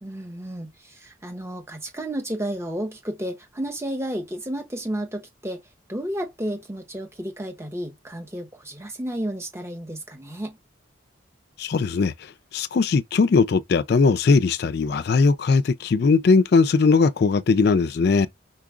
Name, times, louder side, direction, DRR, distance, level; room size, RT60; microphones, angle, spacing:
voice 1, 0.0-5.6 5.9-10.6, right 1 dB, 15° right, 0.9 m, -32 dB
voice 2, 11.6-18.3, left 4 dB, 50° left, 0.3 m, -19 dB
4.7 x 4.4 x 2.4 m
head